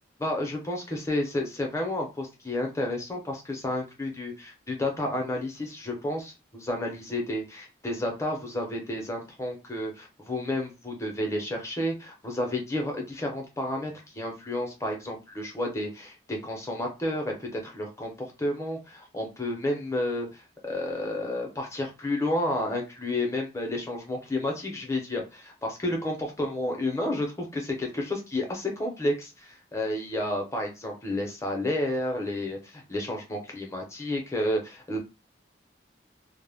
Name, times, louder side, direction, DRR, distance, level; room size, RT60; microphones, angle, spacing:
voice 1, 0.2-35.0, left 1 dB, 15° left, 1 dB, 0.6 m, -31 dB
2.1 x 2.1 x 3.4 m, 0.28 s
head